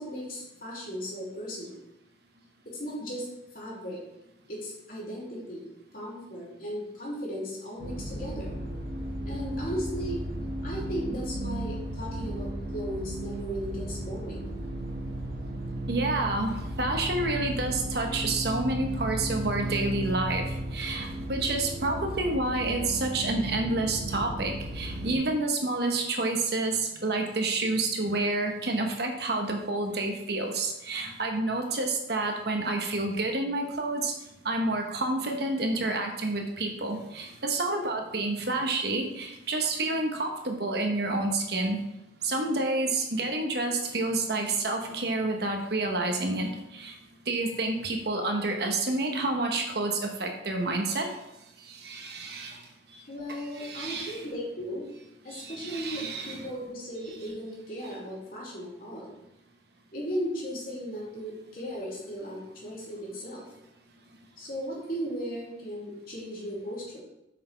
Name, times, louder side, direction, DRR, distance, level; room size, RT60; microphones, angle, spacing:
voice 1, 0.0-1.8 2.6-3.3 3.5-4.0 4.5-5.7 5.9-8.5 9.2-10.2 10.6-14.4 53.1-54.9 55.2-59.1 59.9-63.4 64.4-67.0, equal, 50° left, -5 dB, 2.9 m, -36 dB
sound 1, 7.8-25.2, right 1 dB, 80° right, 1.8 m, -35 dB
voice 2, 15.9-34.1 34.4-41.8 42.2-46.9 47.3-51.1 51.6-52.6 53.5-54.2 55.3-56.4, right 2 dB, 60° right, 3 dB, 1.2 m, -29 dB
8.3 x 6.0 x 3.5 m, 0.87 s
head